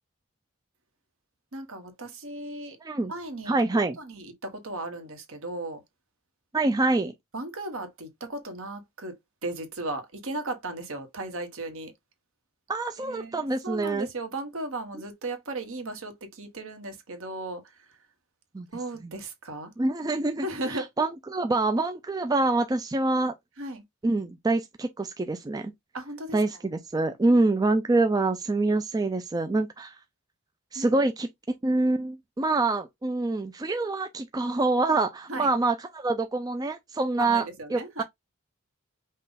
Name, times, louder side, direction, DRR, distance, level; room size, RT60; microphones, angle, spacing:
voice 1, 1.5-2.8 3.1-5.8 7.3-9.1 9.4-11.9 13.0-17.9 18.7-19.7 20.4-21.1 23.6-23.8 25.9-26.4 27.0-27.4 30.7-30.9 35.3-35.5 37.2-38.0, right 2 dB, 65° right, 1.3 m, -36 dB
voice 2, 2.8-3.1 3.5-4.0 6.5-7.1 12.7-14.1 18.5-18.7 19.0-19.1 19.8-23.3 24.0-25.7 26.3-30.0 30.7-37.4 37.7-38.0, right 2 dB, 15° right, 0.4 m, -26 dB
5.5 x 2.4 x 4.0 m
head